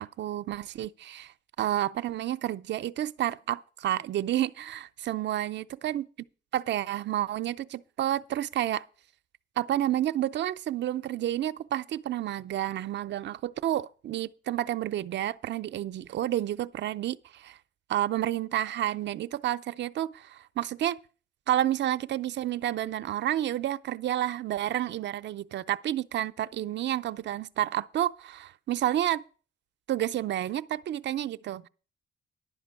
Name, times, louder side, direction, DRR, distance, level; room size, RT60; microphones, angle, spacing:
voice 1, 0.0-1.3 1.6-6.0 6.5-8.8 9.6-17.6 17.9-21.0 21.5-29.2 29.9-31.7, right 12 dB, 65° right, 0.5 m, -30 dB
11.0 x 5.1 x 8.2 m
cardioid pair, 90°, 20 cm